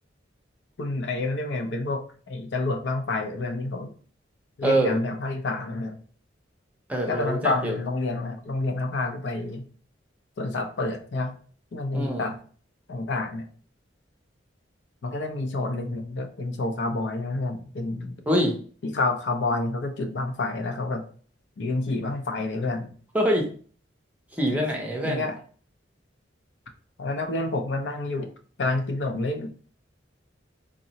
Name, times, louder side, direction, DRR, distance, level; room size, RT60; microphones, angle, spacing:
voice 1, 0.8-3.9 4.6-6.0 7.1-9.7 10.4-11.3 11.7-12.4 12.9-13.5 15.0-18.2 18.8-21.0 21.6-22.9 24.5-24.6 25.0-25.4 27.0-28.3 28.6-29.5, left 2 dB, 65° left, 5 dB, 0.5 m, -28 dB
voice 2, 4.6-5.0 6.9-7.8 11.9-12.3 18.3-18.6 23.1-23.5 24.3-25.2, right 1 dB, 10° right, 0 dB, 0.6 m, -24 dB
3.7 x 2.0 x 2.7 m, 0.42 s
head